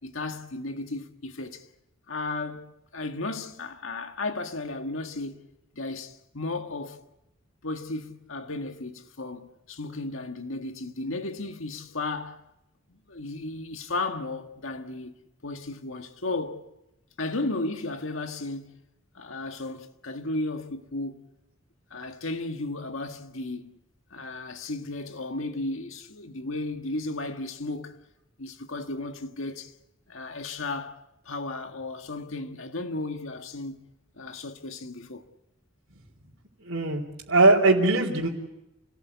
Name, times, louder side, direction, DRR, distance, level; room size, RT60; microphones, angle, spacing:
voice 1, 0.0-1.6 2.1-5.4 5.7-7.0 7.6-12.4 13.1-15.1 15.4-16.7 17.2-18.8 19.2-21.2 21.9-23.7 24.1-28.0 28.4-29.7 30.1-33.8 34.2-35.2, left 2 dB, 75° left, 1.7 m, -34 dB
voice 2, 36.6-37.0 37.3-38.3, right 2 dB, 75° right, 3.5 m, -20 dB
28.5 x 18.5 x 8.3 m
head